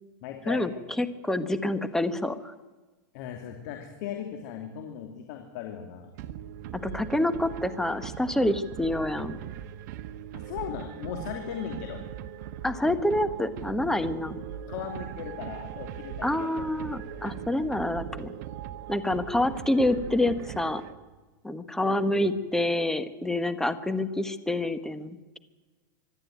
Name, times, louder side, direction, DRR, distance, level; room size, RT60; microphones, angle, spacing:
voice 1, 0.2-0.7 3.1-6.1 10.3-12.0 14.7-16.7 17.1-17.2 21.8-22.3, left 9 dB, 55° left, 3 dB, 2.8 m, -38 dB
voice 2, 1.0-2.5 6.7-9.4 12.6-14.4 16.2-18.3 18.9-20.8 21.4-25.4, left 1 dB, 5° left, 10 dB, 1.3 m, -27 dB
sound 1, 6.2-21.2, right 10 dB, 55° right, 1.3 m, -40 dB
25.0 x 11.5 x 9.3 m, 1.3 s
hypercardioid pair, 125°, 11 cm